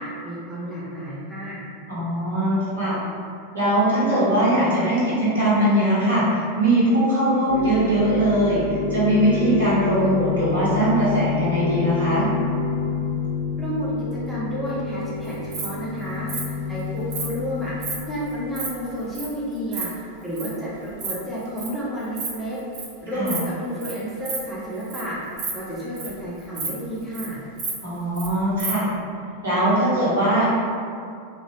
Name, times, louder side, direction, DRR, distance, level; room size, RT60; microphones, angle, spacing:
voice 1, 0.0-1.6 13.6-17.7 18.1-19.9 20.2-22.6 23.0-25.2 25.5-27.4, equal, 5° right, -9 dB, 0.7 m, -31 dB
voice 2, 1.9-3.0 3.5-8.6 8.9-12.3 23.1-23.4 27.8-28.9 29.4-30.5, right 1 dB, 70° right, -10 dB, 1.1 m, -20 dB
sound 1, 7.5-19.0, left 5 dB, 60° left, 0.5 m, -28 dB
Insect, 15.2-15.7 16.3-16.4 17.1-17.3 17.8-17.9 18.3-18.7 19.1-19.3 19.5-19.8 20.4-20.5 20.8-21.1 21.4-21.7 22.0-22.3 22.5-22.9 23.3-23.5 23.8-23.9 24.2-24.4 24.8-25.0 25.3-26.2 26.5-26.7 27.0-27.3 27.6-28.3 28.6-28.7, right 4 dB, 40° right, 0.6 m, -30 dB
2.8 x 2.3 x 2.8 m, 2.3 s
figure-of-eight pair, 90°, 0 cm